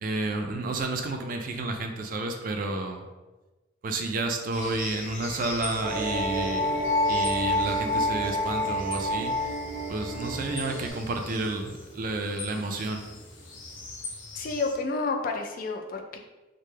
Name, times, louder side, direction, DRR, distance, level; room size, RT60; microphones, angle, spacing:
voice 1, 0.0-3.1 3.8-9.5 9.9-13.0, right 2 dB, 45° right, 4 dB, 0.3 m, -31 dB
sound 1, 4.5-14.8, left 2 dB, 85° left, 0.7 m, -41 dB
sound 2, 5.8-10.9, left 1 dB, 5° left, 0.6 m, -28 dB
voice 2, 14.4-16.2, left 3 dB, 45° left, 3 dB, 0.3 m, -30 dB
3.2 x 2.1 x 3.2 m, 1.1 s
head